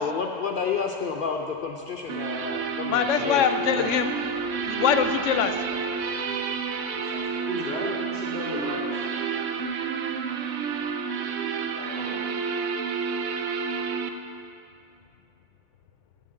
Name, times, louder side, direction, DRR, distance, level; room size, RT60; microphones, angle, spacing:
voice 1, 0.0-3.4 3.8-4.1, left 5 dB, 60° left, 2 dB, 0.6 m, -30 dB
sound 1, 2.1-14.1, right 6 dB, 85° right, 1.0 m, -30 dB
voice 2, 2.9-4.1 4.7-5.7, left 8 dB, 85° left, 9 dB, 0.9 m, -23 dB
voice 3, 6.9-8.9 11.7-12.2, left 1 dB, 50° right, -6 dB, 2.8 m, -35 dB
7.6 x 7.5 x 7.5 m, 2.6 s
omnidirectional pair, 1.2 m